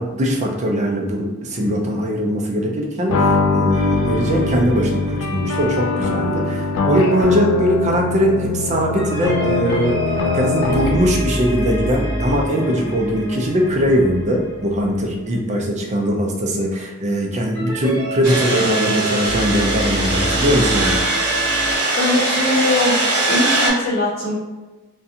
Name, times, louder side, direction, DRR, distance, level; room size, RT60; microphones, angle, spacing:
voice 1, 0.0-21.0, equal, 30° right, 0 dB, 0.4 m, -20 dB
sound 1, 3.1-11.1, left 3 dB, 70° left, 0.3 m, -22 dB
sound 2, 3.7-7.0 9.0-15.5 17.5-21.7, equal, 15° left, 1.1 m, -28 dB
sound 3, 18.2-23.7, right 2 dB, 80° right, 0.7 m, -21 dB
voice 2, 22.0-23.0 23.3-24.4, left 1 dB, 40° left, -7 dB, 1.0 m, -20 dB
2.5 x 2.2 x 2.7 m, 1.2 s
head